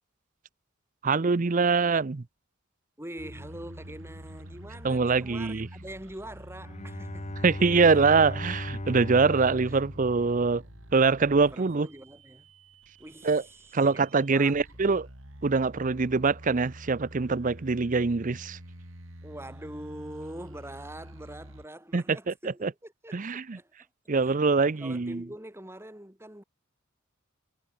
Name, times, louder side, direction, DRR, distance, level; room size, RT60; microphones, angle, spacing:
voice 1, 1.0-2.2 4.8-5.7 7.4-10.6 10.9-11.9 13.2-13.4 13.7-15.1 15.4-18.6 21.9-22.3 22.6-22.7 23.1-23.6 24.1-25.2, right 4 dB, 40° right, 0.6 m, -24 dB
voice 2, 3.0-7.3 7.6-8.0 9.7-9.8 11.4-12.5 13.0-14.5 19.2-23.7 24.2-26.4, right 1 dB, 10° right, 6.2 m, -44 dB
sound 1, 3.2-21.7, equal, 80° right, 7.2 m, -47 dB
Bowed string instrument, 6.6-10.9, left 1 dB, 35° left, 2.2 m, -37 dB
head